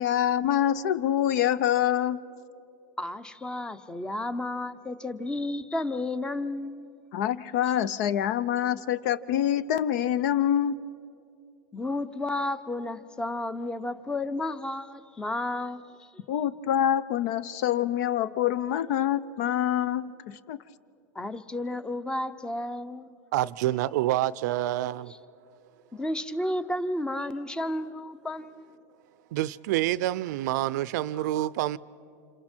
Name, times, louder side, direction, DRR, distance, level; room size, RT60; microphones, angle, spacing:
voice 1, 0.0-2.2 7.1-10.8 16.3-20.6, left 10 dB, 65° left, 0.7 m, -26 dB
voice 2, 3.0-6.9 11.7-16.1 21.1-23.1 25.9-28.7, left 1 dB, 10° left, 0.7 m, -32 dB
voice 3, 23.3-25.1 29.3-31.8, right 14 dB, 70° right, 0.5 m, -27 dB
29.0 x 27.0 x 4.5 m
supercardioid pair, 130°, 10 cm